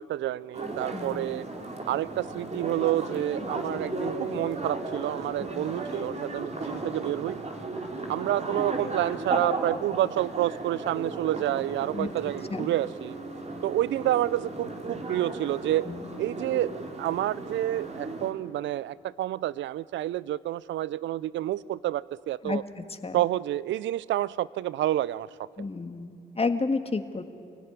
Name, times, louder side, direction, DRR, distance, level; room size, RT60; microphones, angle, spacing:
voice 1, 0.0-1.5 1.9-7.4 8.1-13.2 13.6-15.9 16.2-22.6 23.1-25.3, right 14 dB, 75° right, 20 dB, 0.5 m, -29 dB
sound 1, 0.5-18.3, right 2 dB, 35° right, 3.6 m, -35 dB
voice 2, 0.9-1.3 5.4-5.8 11.9-12.1 12.5-12.7 15.9-16.2 22.4-22.6 22.9-23.2 25.6-27.2, left 3 dB, 30° left, 7 dB, 1.8 m, -31 dB
25.5 x 17.0 x 9.7 m, 2.5 s
supercardioid pair, 50°, 20 cm